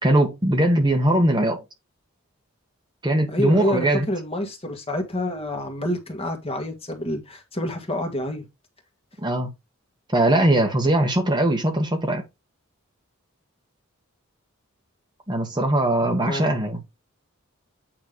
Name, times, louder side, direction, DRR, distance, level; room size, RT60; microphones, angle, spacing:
voice 1, 0.0-1.6 3.0-4.1 9.2-9.5 10.1-12.2 15.3-16.8, right 1 dB, 20° right, 1.5 m, -20 dB
voice 2, 3.3-8.4 16.0-16.6, left 1 dB, 25° left, 1.8 m, -28 dB
9.0 x 3.4 x 5.1 m
head